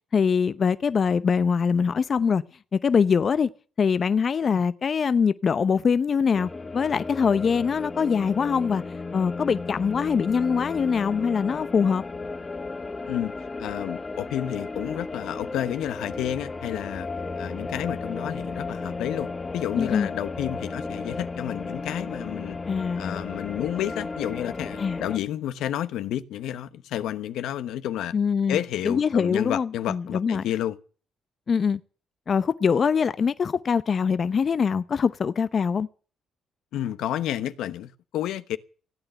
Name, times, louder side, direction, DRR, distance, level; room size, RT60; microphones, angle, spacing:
voice 1, 0.1-2.4 2.7-3.5 3.8-8.8 9.1-12.0 19.8-20.1 22.7-23.2 24.8-25.0 28.1-30.4 31.5-31.8 32.3-35.9, left 6 dB, 50° left, 0.7 m, -23 dB
sound 1, 6.3-25.2, left 3 dB, 25° left, 2.0 m, -34 dB
voice 2, 13.6-17.1 17.4-22.6 23.0-28.1 28.5-30.8 36.7-38.6, left 11 dB, 80° left, 0.9 m, -30 dB
16.5 x 9.0 x 9.1 m
supercardioid pair, 70°, 0 cm